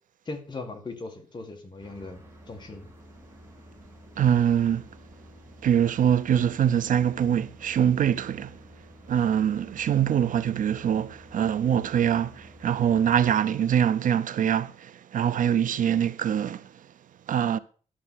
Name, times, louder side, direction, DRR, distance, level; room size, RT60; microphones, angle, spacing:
voice 1, 0.3-2.9, left 3 dB, 35° left, 1.9 m, -39 dB
sound 1, 1.8-13.3, equal, 20° right, 3.3 m, -51 dB
voice 2, 4.2-4.8 5.6-8.5 9.1-16.6 17.3-17.6, right 9 dB, 70° right, 0.6 m, -24 dB
11.5 x 6.1 x 5.8 m
wide cardioid pair, 150°, 14 cm